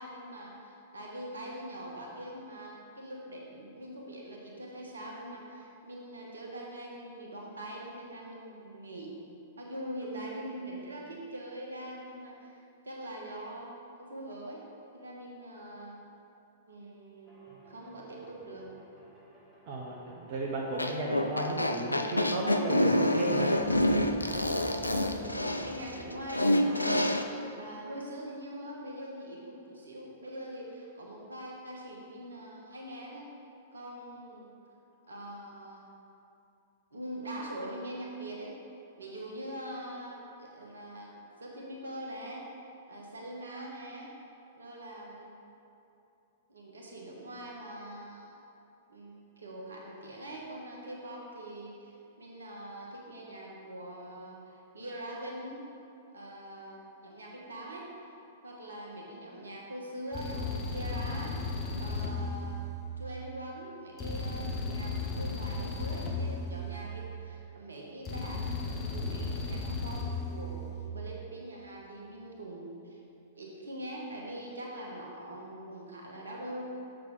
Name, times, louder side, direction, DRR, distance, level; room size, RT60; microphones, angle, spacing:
voice 1, 0.0-9.2 9.6-13.7 14.0-14.6 14.9-16.0 16.7-18.7 24.8-27.1 27.6-33.3 33.7-34.6 35.1-35.8 36.9-38.5 39.0-42.5 42.9-44.1 44.6-45.4 46.5-48.3 48.9-55.6 56.1-57.9 58.4-61.4 61.7-62.6 63.0-73.0 73.4-76.7, right 1 dB, 70° right, -2 dB, 1.3 m, -43 dB
sound 1, 17.3-26.2, left 1 dB, 5° right, 1.8 m, -51 dB
voice 2, 19.7-23.6, right 2 dB, 45° right, -3 dB, 0.8 m, -34 dB
sound 2, 20.7-27.2, left 1 dB, 85° left, 0.4 m, -27 dB
sound 3, 60.1-63.2 64.0-67.3 68.1-70.9, left 2 dB, 25° left, 1.0 m, -35 dB
7.1 x 6.5 x 3.9 m, 2.8 s
figure-of-eight pair, 105°, 0 cm